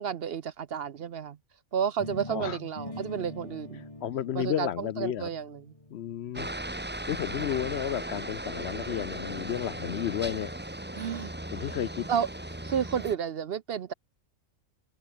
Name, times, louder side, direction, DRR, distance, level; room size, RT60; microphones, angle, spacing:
voice 1, 0.0-1.4 1.7-3.9 4.3-5.6 7.4-7.6 10.9-11.3 11.7-11.8 12.1-12.3 12.6-13.9, right 8 dB, 55° right, 0.8 m, -31 dB
sound 1, 2.0-7.9, left 2 dB, 25° left, 2.9 m, -44 dB
voice 2, 4.0-5.3 5.9-6.5 7.1-10.5 11.5-12.1, left 10 dB, 65° left, 0.8 m, -32 dB
Aircraft, 6.3-13.1, right 1 dB, 10° right, 1.5 m, -37 dB
open air
omnidirectional pair, 1.3 m